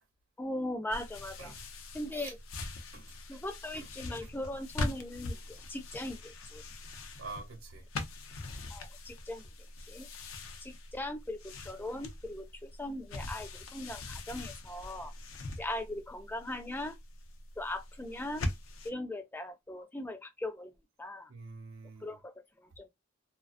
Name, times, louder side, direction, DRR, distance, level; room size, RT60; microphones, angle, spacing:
voice 1, 0.4-1.5 1.9-2.4 3.3-6.6 8.7-9.4 9.9-10.1 10.6-15.1 15.6-17.0 17.6-18.4 18.8-20.7 21.0-21.3 22.0-22.9, left 1 dB, 10° left, 0.3 m, -39 dB
sound 1, 0.9-18.9, left 2 dB, 75° left, 0.5 m, -42 dB
voice 2, 7.2-7.8 21.3-22.2, right 4 dB, 90° right, 0.8 m, -46 dB
2.3 x 2.2 x 2.4 m
head